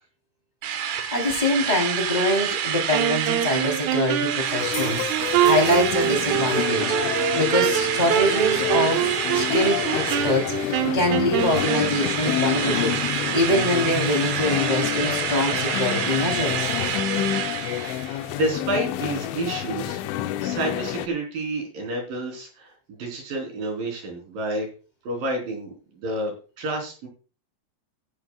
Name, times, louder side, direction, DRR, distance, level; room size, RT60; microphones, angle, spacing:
Drill, 0.6-11.0 11.4-18.3, right 9 dB, 65° right, 2.8 m, -28 dB
voice 1, 0.8-16.7, left 1 dB, 10° left, 2 dB, 2.2 m, -24 dB
Wind instrument woodwind instrument, 2.9-11.9, right 11 dB, 85° right, 3.7 m, -25 dB
sound 1, 4.6-21.1, left 13 dB, 80° left, 3.1 m, -29 dB
voice 2, 18.3-20.0 20.4-24.7 25.0-27.1, right 1 dB, 50° right, 1 dB, 5.0 m, -29 dB
16.0 x 10.5 x 2.3 m, 0.36 s
omnidirectional pair, 5.5 m